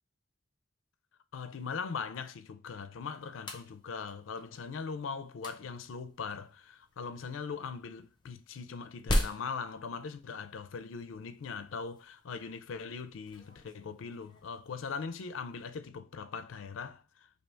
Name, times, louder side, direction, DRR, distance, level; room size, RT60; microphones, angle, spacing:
voice 1, 1.3-17.3, left 5 dB, 75° left, 0.4 m, -40 dB
sound 1, 3.0-15.8, left 1 dB, 25° left, 0.7 m, -41 dB
3.3 x 2.8 x 4.3 m
head